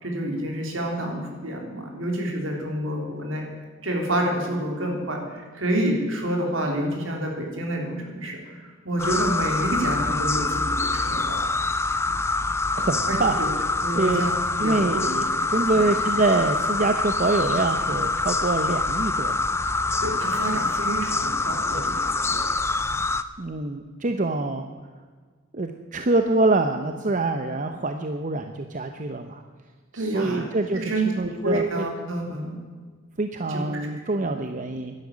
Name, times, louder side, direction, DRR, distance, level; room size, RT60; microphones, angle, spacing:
voice 1, 0.0-3.5 3.8-11.5 13.1-13.5 13.8-14.3 14.6-15.0 15.7-15.9 20.0-22.4 29.9-30.4 30.7-32.6 33.5-33.6 34.2-34.4, right 1 dB, 65° right, 1 dB, 3.5 m, -28 dB
sound 1, 9.0-23.2, left 3 dB, 10° left, 0.4 m, -25 dB
voice 2, 12.8-13.4 13.9-14.2 14.6-19.5 21.7-21.8 23.4-24.7 25.5-29.4 29.9-31.9 33.2-34.9, right 2 dB, 40° right, 7 dB, 0.7 m, -25 dB
12.0 x 11.5 x 8.5 m, 1.5 s
head